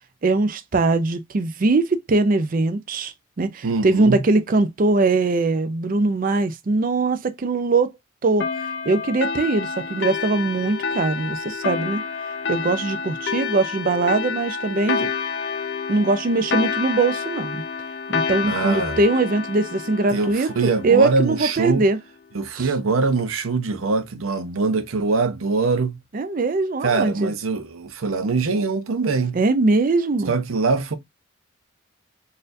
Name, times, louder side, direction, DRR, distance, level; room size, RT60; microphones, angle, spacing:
voice 1, 0.2-7.9 8.2-8.5 8.8-12.0 12.5-15.1 15.9-17.6 18.1-22.0 22.5-22.7 26.1-27.3 29.3-30.3, right 3 dB, 40° right, 0.4 m, -21 dB
voice 2, 3.6-4.2 18.4-19.0 20.1-21.8 22.3-26.0 26.8-29.4 30.3-30.9, right 4 dB, 85° right, 0.7 m, -23 dB
sound 1, 8.4-21.5, left 5 dB, 55° left, 0.4 m, -28 dB
4.1 x 2.6 x 2.6 m
head